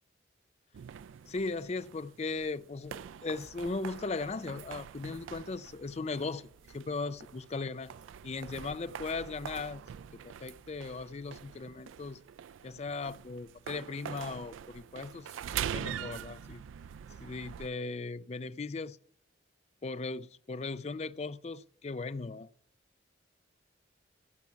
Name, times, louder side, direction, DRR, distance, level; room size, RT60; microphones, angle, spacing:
sound 1, 0.7-17.7, right 9 dB, 90° right, 0.3 m, -44 dB
voice 1, 1.3-6.5 6.7-7.9 8.2-9.8 10.2-12.2 12.6-15.4 15.7-16.6 17.2-19.0 19.8-22.5, left 3 dB, 35° left, 0.4 m, -38 dB
15.5 x 6.0 x 5.7 m
head